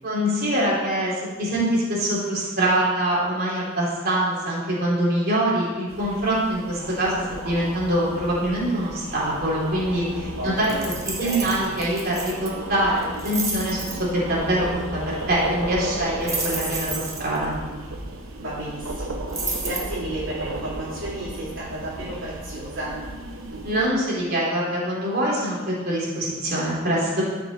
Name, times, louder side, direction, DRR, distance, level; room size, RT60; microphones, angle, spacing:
voice 1, 0.0-1.1 1.4-10.7 11.1-13.8 14.1-17.5 23.6-27.2, right 1 dB, 50° right, -6 dB, 3.5 m, -24 dB
sound 1, 5.9-23.9, right 2 dB, 85° right, 1.2 m, -35 dB
voice 2, 10.4-10.9 11.2-11.5 18.4-22.9, right 1 dB, 70° right, -8 dB, 2.7 m, -33 dB
sound 2, 10.6-12.5 13.0-14.0 16.2-17.4 19.3-19.8, right 3 dB, 15° right, 1.3 m, -30 dB
13.0 x 6.1 x 4.3 m, 1.3 s
head